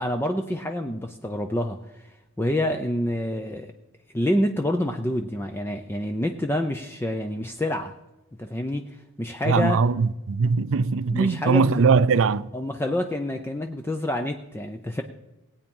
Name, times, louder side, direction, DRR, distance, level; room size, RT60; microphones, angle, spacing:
voice 1, 0.0-3.7 4.1-7.9 8.4-9.8 11.1-11.8 12.5-15.0, left 1 dB, 10° left, 0.6 m, -27 dB
voice 2, 9.5-12.5, right 5 dB, 65° right, 0.5 m, -21 dB
18.5 x 8.5 x 5.4 m
head